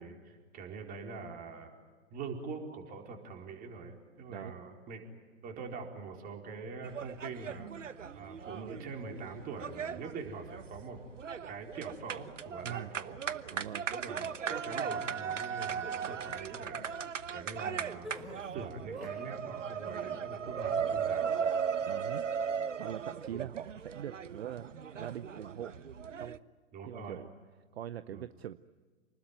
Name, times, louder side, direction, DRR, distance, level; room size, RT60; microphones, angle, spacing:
voice 1, 0.0-1.7 2.1-5.0 5.4-7.7 8.1-11.0 11.5-13.6 13.9-17.0 17.3-18.2 18.5-21.7 23.3-23.5 26.7-27.2 28.1-28.3, right 4 dB, 20° right, 3 dB, 4.4 m, -44 dB
sound 1, 6.8-26.4, right 7 dB, 75° right, 1.1 m, -37 dB
voice 2, 12.6-12.9 13.5-13.9 21.8-22.3 22.8-24.7 25.0-25.8 26.2-26.4 26.9-27.3 27.7-28.6, right 10 dB, 55° right, 15 dB, 0.8 m, -42 dB
sound 2, 18.0-19.3 19.7-20.2, equal, ahead, 3.2 m, -47 dB
29.0 x 20.5 x 9.4 m, 1.5 s
figure-of-eight pair, 125°, 38 cm